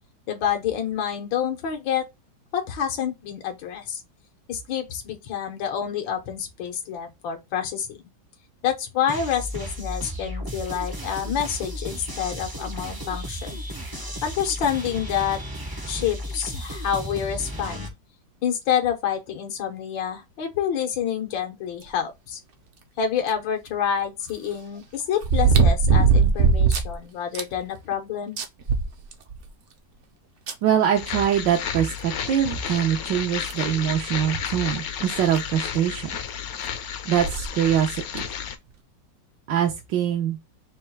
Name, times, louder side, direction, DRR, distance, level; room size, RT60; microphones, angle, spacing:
voice 1, 0.3-2.1 2.5-4.0 4.5-8.0 8.6-13.6 14.2-15.4 15.8-17.9 18.4-22.4 23.0-28.4, left 8 dB, 85° left, 1.6 m, -28 dB
sound 1, 9.1-17.9, equal, 35° right, 0.3 m, -34 dB
sound 2, 23.3-23.4 25.2-26.9 27.3-27.4 27.9-28.0 28.4-29.5 30.5-30.6 32.0-32.1 32.7-32.8 33.5-33.7 35.0-35.1 35.4-35.5 37.2-37.5 38.2-38.3, right 5 dB, 60° right, 0.7 m, -19 dB
voice 2, 30.6-36.1 37.1-38.3 39.5-40.4, right 9 dB, 75° right, 1.4 m, -23 dB
sound 3, 30.9-38.6, left 8 dB, 65° left, 0.9 m, -32 dB
4.3 x 2.3 x 4.4 m
omnidirectional pair, 2.0 m